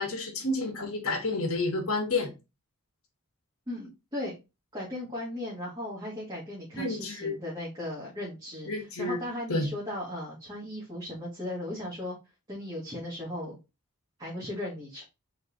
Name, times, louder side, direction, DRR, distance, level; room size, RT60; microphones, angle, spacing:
voice 1, 0.0-2.3 6.8-7.4 8.6-9.2 9.5-9.7, left 2 dB, 70° left, 1.4 m, -30 dB
voice 2, 3.7-4.4 4.7-8.7 9.0-12.1 12.5-13.6 14.2-15.1, left 1 dB, 20° right, 1.5 m, -37 dB
3.9 x 3.3 x 3.9 m
head